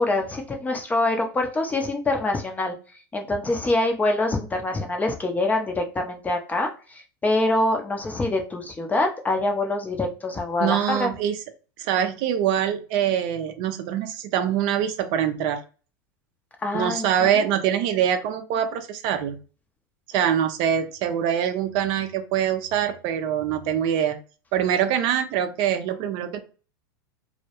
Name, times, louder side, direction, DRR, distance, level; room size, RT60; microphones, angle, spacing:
voice 1, 0.0-2.7 3.1-11.1 16.6-17.1 17.3-17.4, left 2 dB, 15° left, 4 dB, 0.5 m, -25 dB
voice 2, 10.6-11.3 11.8-15.6 16.7-19.4 20.1-24.2 24.5-26.4, right 9 dB, 55° right, 8 dB, 0.4 m, -24 dB
2.2 x 2.0 x 2.8 m, 0.36 s
hypercardioid pair, 105°, 11 cm